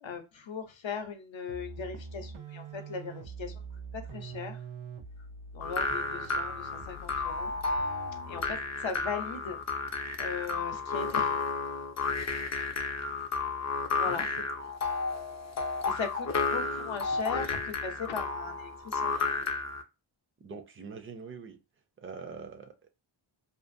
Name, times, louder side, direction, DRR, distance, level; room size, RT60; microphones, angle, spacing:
voice 1, 0.0-3.6 3.9-4.6 5.5-7.5 8.3-9.6 10.2-11.4 14.0-14.3 15.9-19.3, left 5 dB, 70° left, 0.7 m, -38 dB
sound 1, 1.5-8.6, right 4 dB, 80° right, 0.6 m, -45 dB
sound 2, 5.6-19.8, left 4 dB, 35° left, 0.5 m, -32 dB
voice 2, 20.4-21.6 22.0-22.9, right 5 dB, 25° right, 0.5 m, -44 dB
2.5 x 2.4 x 2.5 m
wide cardioid pair, 85°, 48 cm